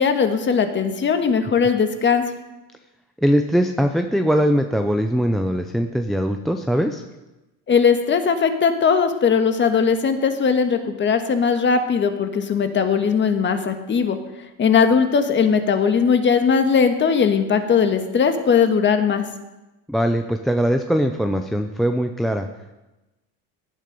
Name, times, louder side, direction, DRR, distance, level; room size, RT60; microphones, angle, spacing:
voice 1, 0.0-2.2 7.7-14.2 14.6-19.2, left 6 dB, 25° left, 7 dB, 1.5 m, -19 dB
voice 2, 3.2-7.0 19.9-22.5, equal, ahead, 5 dB, 0.4 m, -21 dB
17.5 x 11.0 x 5.3 m, 1.0 s
cardioid pair, 140°, 44 cm